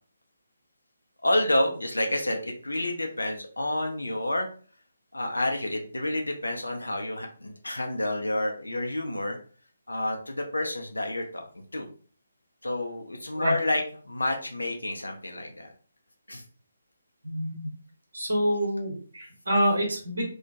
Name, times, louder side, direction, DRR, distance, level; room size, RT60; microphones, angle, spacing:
voice 1, 1.2-4.5 5.1-9.4 9.9-11.5 11.7-11.9 12.6-15.7 16.3-16.4, left 1 dB, 75° left, 2 dB, 0.5 m, -29 dB
voice 2, 17.2-17.6 18.1-20.2, equal, 70° right, 0 dB, 0.9 m, -27 dB
2.2 x 2.1 x 2.7 m, 0.42 s
figure-of-eight pair, 145°, 0 cm